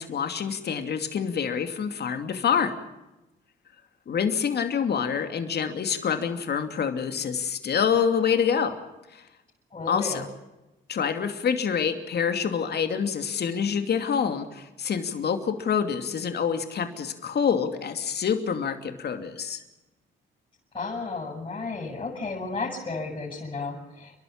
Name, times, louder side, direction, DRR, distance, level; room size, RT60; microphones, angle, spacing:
voice 1, 0.0-2.8 4.1-8.8 9.1-9.2 9.9-10.2 10.9-19.6, left 7 dB, 55° left, 7 dB, 2.7 m, -26 dB
voice 2, 9.7-10.3 20.7-24.1, left 3 dB, 30° left, -4 dB, 7.6 m, -33 dB
30.0 x 12.0 x 8.7 m, 1.0 s
cardioid pair, 90°, 20 cm